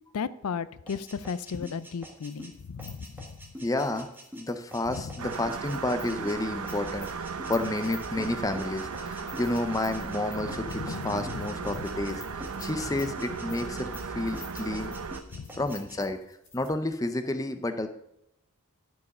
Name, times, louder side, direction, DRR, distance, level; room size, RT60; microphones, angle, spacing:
voice 1, 0.1-3.3 5.0-5.2 10.4-11.8 12.6-12.7 15.3-15.5, left 6 dB, 90° left, 16 dB, 0.4 m, -35 dB
sound 1, 0.9-10.2 10.5-12.1 12.4-14.1 14.3-16.0, equal, 10° right, 1.4 m, -46 dB
sound 2, 1.5-16.8, left 4 dB, 35° left, 3.0 m, -52 dB
voice 2, 3.6-4.1 4.3-12.2 12.6-14.9 15.6-16.2 16.5-17.9, left 2 dB, 15° left, 9 dB, 0.5 m, -30 dB
sound 3, 5.2-15.2, right 5 dB, 85° right, 0.7 m, -36 dB
12.5 x 4.7 x 5.4 m, 0.81 s
head